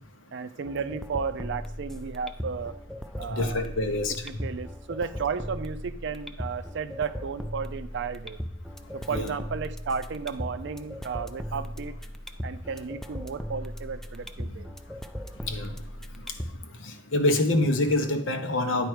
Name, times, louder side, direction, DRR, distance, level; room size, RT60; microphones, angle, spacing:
voice 1, 0.3-2.7 3.2-3.6 4.2-8.4 8.9-12.0 12.4-14.7, right 5 dB, 65° right, 12 dB, 0.5 m, -33 dB
sound 1, 0.6-16.6, equal, ahead, 0.3 m, -38 dB
voice 2, 3.3-4.2 9.1-9.4 15.4-15.7 16.8-18.9, left 2 dB, 75° left, 6 dB, 0.9 m, -26 dB
9.3 x 4.6 x 4.9 m, 0.79 s
head